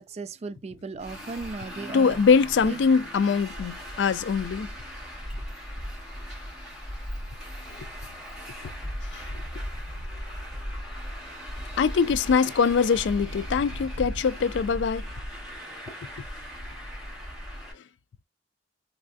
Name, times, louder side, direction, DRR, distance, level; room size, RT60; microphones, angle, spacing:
voice 1, 0.0-2.2 2.6-2.8, right 3 dB, 35° right, 0.4 m, -36 dB
Traffic noise roadway noise, 1.0-17.7, equal, ahead, 1.9 m, -37 dB
voice 2, 1.9-4.7 7.8-7.9 9.1-9.2 11.8-15.0, left 5 dB, 85° left, 0.4 m, -23 dB
3.5 x 3.2 x 2.5 m
head